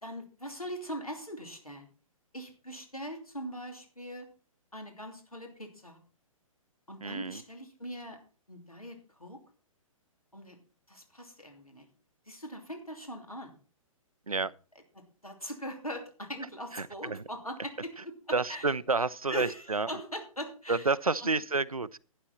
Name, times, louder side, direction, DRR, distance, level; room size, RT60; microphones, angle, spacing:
voice 1, 0.0-1.9 2.3-4.3 4.7-6.0 6.9-8.2 8.5-9.4 10.3-10.6 10.9-11.9 12.3-13.5 15.2-18.7 19.3-20.9 21.2-21.3, equal, 90° left, 2.9 m, -41 dB
voice 2, 7.0-7.4 14.3-14.5 16.7-17.2 18.3-19.9 20.7-22.0, right 3 dB, 85° right, 0.6 m, -29 dB
11.5 x 9.6 x 4.2 m
figure-of-eight pair, 120°, 18 cm